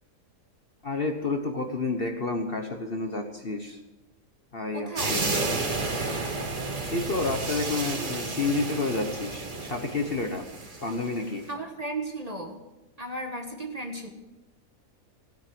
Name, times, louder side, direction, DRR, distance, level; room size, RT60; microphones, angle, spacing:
voice 1, 0.8-3.8 4.5-5.2 6.9-10.4 10.8-11.5, left 3 dB, 40° left, 4 dB, 1.3 m, -30 dB
voice 2, 4.7-5.2 11.5-12.6 13.0-14.1, right 2 dB, 25° right, 3 dB, 1.5 m, -35 dB
sound 1, 5.0-11.2, right 3 dB, 90° right, 3.0 m, -31 dB
17.0 x 9.3 x 7.8 m, 1.1 s
omnidirectional pair, 1.7 m